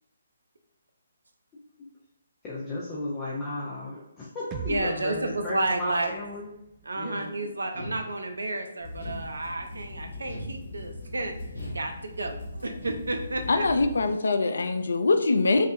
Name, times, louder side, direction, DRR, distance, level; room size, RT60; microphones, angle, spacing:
voice 1, 2.4-6.5 6.9-7.3, left 1 dB, 20° left, -7 dB, 0.7 m, -34 dB
sound 1, 4.5-8.4, right 5 dB, 20° right, 0.3 m, -43 dB
voice 2, 4.6-6.2 6.8-11.3 11.7-13.7, right 2 dB, 70° right, 5 dB, 0.6 m, -31 dB
sound 2, 7.7-8.5 9.0-9.8 10.3-11.1 11.5-12.4 12.8-13.4, right 1 dB, 80° left, 1.4 m, -41 dB
sound 3, 8.8-14.1, left 2 dB, 45° left, 0.9 m, -40 dB
voice 3, 13.5-15.7, left 3 dB, 65° left, 8 dB, 0.4 m, -23 dB
4.8 x 2.4 x 2.7 m, 0.87 s
figure-of-eight pair, 140°, 0 cm